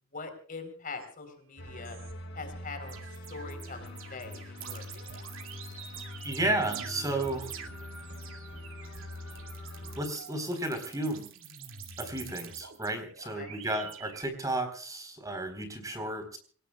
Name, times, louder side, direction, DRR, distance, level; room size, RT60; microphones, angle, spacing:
voice 1, 0.1-2.0 2.3-5.0 13.3-13.5, left 4 dB, 40° left, 7 dB, 3.9 m, -43 dB
sound 1, 1.0-1.1 1.6-2.1 2.6-14.2, right 7 dB, 70° right, 2.5 m, -46 dB
sound 2, 1.6-10.0, left 1 dB, 60° left, 4.7 m, -43 dB
voice 2, 6.2-7.5 10.0-11.2 12.0-16.4, right 1 dB, 15° right, 7 dB, 4.0 m, -33 dB
27.0 x 18.5 x 2.4 m, 0.42 s
head